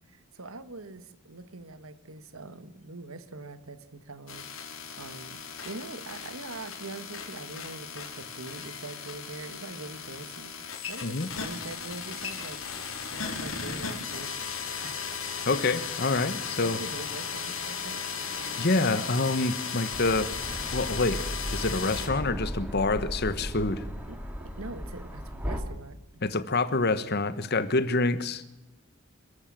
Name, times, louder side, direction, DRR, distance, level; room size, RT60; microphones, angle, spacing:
voice 1, 0.1-4.4 5.0-12.6 13.1-14.5 14.8-15.1 16.0-16.2 16.6-18.0 24.1-26.2, right 2 dB, 80° right, 12 dB, 1.6 m, -43 dB
sound 1, 4.3-22.1, left 6 dB, 70° left, 4.2 m, -36 dB
Sliding door, 15.2-19.3 19.8-19.9, equal, 50° right, 5.2 m, -54 dB
voice 2, 15.5-16.8 18.6-20.3 20.7-21.2 21.5-23.9 26.2-28.4, left 3 dB, 50° left, 13 dB, 1.3 m, -27 dB
sound 2, 19.9-25.6, equal, 5° right, 2.7 m, -36 dB
27.0 x 14.5 x 7.6 m, 1.0 s
head